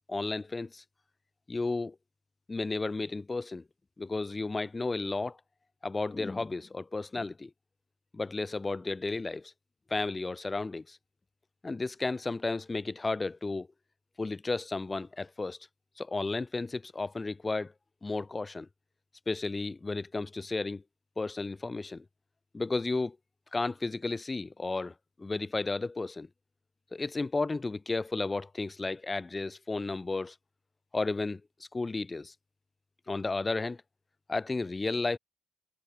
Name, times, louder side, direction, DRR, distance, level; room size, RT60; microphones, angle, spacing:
voice 1, 0.1-0.8 1.5-2.0 2.5-3.6 4.0-5.4 5.8-7.5 8.1-9.5 9.9-11.0 11.6-13.7 14.2-15.6 16.0-17.7 18.0-18.7 19.3-20.8 21.2-22.0 22.5-23.2 23.5-24.9 25.2-26.3 26.9-30.3 30.9-31.4 31.7-32.3 33.1-33.8 34.3-35.2, left 3 dB, 25° left, 0.5 m, -33 dB
cardioid pair, 90°, 0 cm